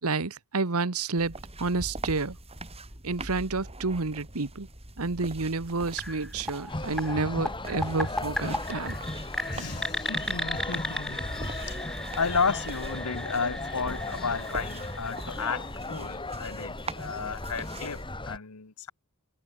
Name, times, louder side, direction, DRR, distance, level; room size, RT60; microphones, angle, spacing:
voice 1, 0.0-2.4 3.0-4.7 5.0-9.0, right 3 dB, 75° right, 1.3 m, -30 dB
sound 1, 1.2-18.0, right 2 dB, 25° right, 7.1 m, -43 dB
sound 2, 6.0-15.8, left 1 dB, 5° left, 1.5 m, -37 dB
sound 3, 6.7-18.4, left 2 dB, 20° left, 3.2 m, -37 dB
voice 2, 9.5-18.9, left 5 dB, 80° left, 1.5 m, -33 dB
head